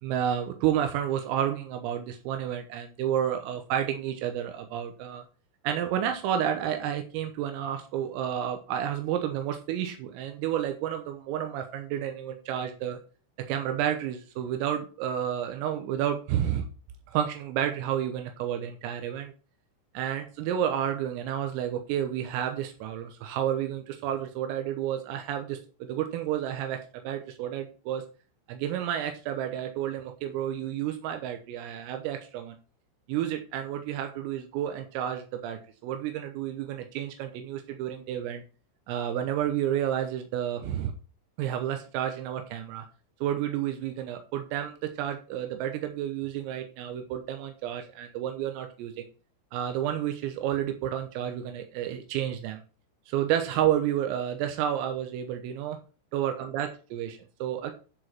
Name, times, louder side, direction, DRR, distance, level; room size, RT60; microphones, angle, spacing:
voice 1, 0.0-5.2 5.6-13.0 13.5-16.6 17.1-19.3 20.0-25.6 25.9-28.0 28.5-32.6 33.1-38.4 38.9-40.9 41.4-42.9 43.2-49.1 49.5-52.6 53.1-55.8 56.1-57.7, right 10 dB, 90° right, 5 dB, 3.7 m, -30 dB
11.0 x 5.0 x 5.8 m, 0.36 s
omnidirectional pair, 6.0 m